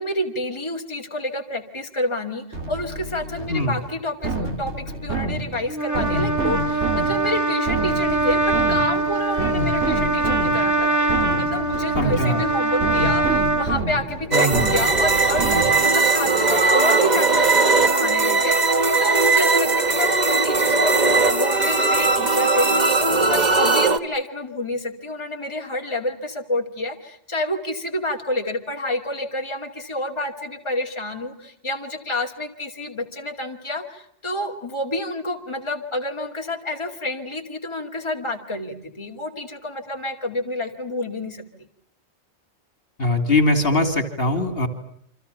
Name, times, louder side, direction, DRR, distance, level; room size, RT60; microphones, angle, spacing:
voice 1, 0.0-11.0 11.3-41.7, left 1 dB, 25° left, 1 dB, 2.7 m, -29 dB
sound 1, 2.5-16.0, right 2 dB, 75° right, 2.9 m, -28 dB
Trumpet, 5.7-13.7, right 2 dB, 15° right, 2.7 m, -23 dB
voice 2, 11.9-12.4 14.3-14.7 43.0-44.7, left 1 dB, 55° left, 8 dB, 3.1 m, -21 dB
sound 2, 14.3-24.0, right 3 dB, 40° right, 1.4 m, -19 dB
29.0 x 25.5 x 6.9 m, 0.68 s
omnidirectional pair, 1.2 m